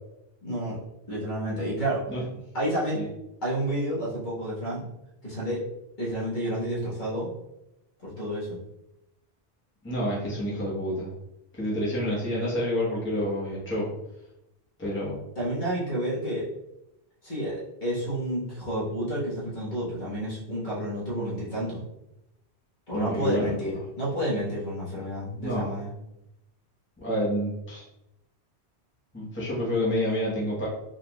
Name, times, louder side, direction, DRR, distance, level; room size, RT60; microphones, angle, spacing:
voice 1, 0.4-0.8 1.1-2.0 2.5-3.0 3.4-4.9 5.2-5.6 6.0-7.3 8.0-8.6 15.4-16.5 17.2-21.8 22.9-25.9, right 1 dB, 45° left, -7 dB, 1.3 m, -30 dB
voice 2, 9.8-11.1 11.5-13.9 14.8-15.2 22.9-23.5 25.4-25.7 27.0-27.8 29.1-30.7, equal, 10° left, -7 dB, 0.9 m, -28 dB
3.8 x 2.5 x 2.9 m, 0.86 s
omnidirectional pair, 1.1 m